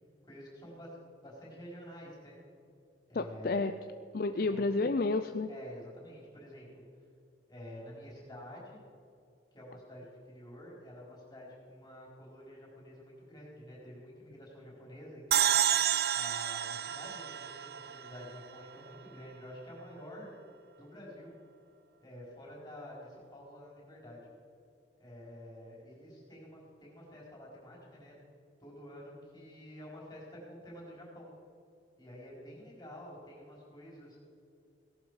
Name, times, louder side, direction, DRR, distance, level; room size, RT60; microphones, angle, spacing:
voice 1, 0.2-0.9 1.2-2.4 3.1-3.7 4.3-4.7 5.5-6.8 7.5-8.8 9.5-15.5 16.1-20.3 20.8-21.3 22.0-24.2 25.0-28.1 28.6-31.3 32.0-34.2, equal, 20° left, -4 dB, 4.5 m, -49 dB
voice 2, 3.1-3.7 4.1-5.5, left 3 dB, 50° left, 9 dB, 0.4 m, -30 dB
sound 1, 15.3-18.6, right 10 dB, 60° right, 0.4 m, -30 dB
17.5 x 11.5 x 5.0 m, 2.5 s
head